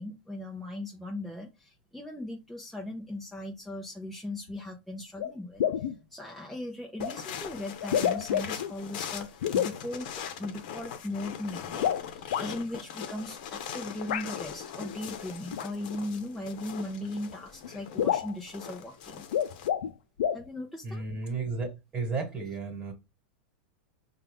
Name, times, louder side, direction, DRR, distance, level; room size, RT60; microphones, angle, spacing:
voice 1, 0.0-5.6 6.1-10.1 10.4-19.3 20.3-21.0, left 1 dB, ahead, -2 dB, 0.7 m, -38 dB
sound 1, 4.5-4.6 5.2-5.3 5.6-6.0 7.0-7.1 7.8-8.7 9.4-9.8 11.7-12.5 14.1-14.3 15.5-15.7 16.9-17.0 17.3-17.4 17.6-17.7 18.0-18.4 19.2-19.9 20.2-20.4, left 9 dB, 80° left, 0.5 m, -28 dB
sound 2, 7.0-19.7, left 8 dB, 60° left, 0.9 m, -41 dB
voice 2, 20.8-22.9, right 4 dB, 25° right, 1 dB, 1.6 m, -33 dB
5.4 x 2.4 x 3.5 m, 0.24 s
supercardioid pair, 140°, 5 cm